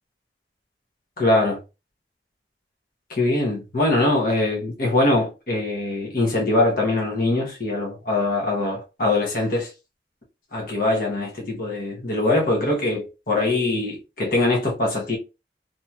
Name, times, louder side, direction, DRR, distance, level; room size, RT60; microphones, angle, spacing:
voice 1, 1.2-1.6 3.1-9.7 10.5-15.2, left 2 dB, 50° left, 0.9 m, -22 dB
2.9 x 2.7 x 2.2 m
head